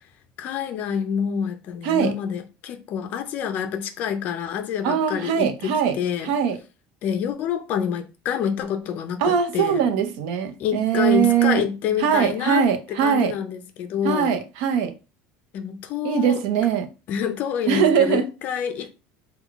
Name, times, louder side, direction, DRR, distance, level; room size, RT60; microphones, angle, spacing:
voice 1, 0.4-6.3 7.0-9.8 10.6-12.6 12.9-14.4 15.5-16.4 17.1-18.9, left 8 dB, 40° left, 0.4 m, -27 dB
voice 2, 1.8-2.1 4.8-5.9 6.2-6.6 9.2-11.6 12.0-13.3 14.0-14.9 16.0-16.9 17.7-18.3, right 8 dB, 70° right, 0.6 m, -21 dB
3.7 x 2.2 x 3.5 m
cardioid pair, 175°, 4 cm